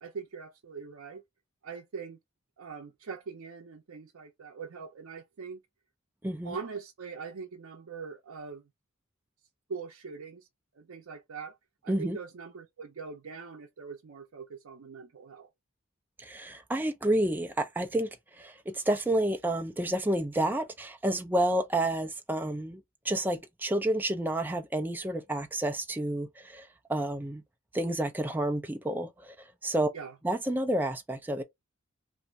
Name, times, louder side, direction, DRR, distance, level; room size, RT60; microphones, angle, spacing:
voice 1, 0.0-1.2 1.6-2.2 2.6-5.6 6.4-8.6 9.7-10.5 10.7-11.6 11.8-15.5 29.9-30.1, right 5 dB, 85° right, 0.5 m, -42 dB
voice 2, 6.2-6.6 11.9-12.2 16.2-27.4 27.7-29.9 30.2-31.4, right 1 dB, 10° right, 0.4 m, -30 dB
2.6 x 2.4 x 3.1 m
head